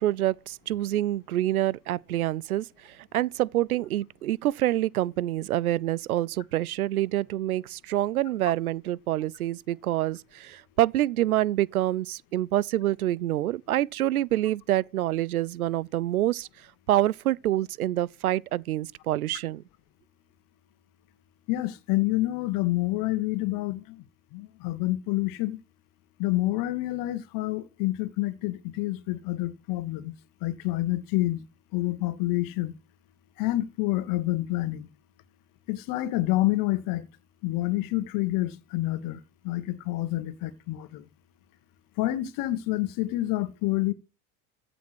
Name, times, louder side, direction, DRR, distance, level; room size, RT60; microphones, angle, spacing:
voice 1, 0.0-16.5 16.9-19.6, right 14 dB, 85° right, 0.5 m, -27 dB
voice 2, 21.5-24.0 24.3-25.6 26.2-30.2 30.4-31.4 31.7-32.7 33.4-34.9 35.7-37.1 37.4-41.0 42.0-43.9, left 17 dB, 50° left, 1.8 m, -28 dB
15.0 x 7.0 x 6.1 m
hypercardioid pair, 85°, 43 cm